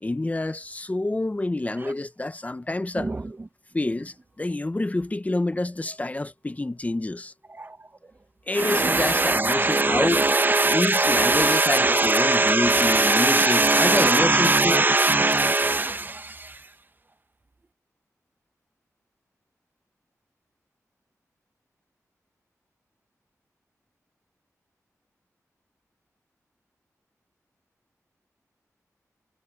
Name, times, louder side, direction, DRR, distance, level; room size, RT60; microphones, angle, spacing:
voice 1, 0.0-3.1 3.7-7.3 8.5-10.2 10.7-14.8, left 2 dB, 25° left, 0.8 m, -27 dB
voice 2, 8.5-16.6, right 2 dB, 35° right, 0.8 m, -21 dB
wide cardioid pair, 70°, 6 cm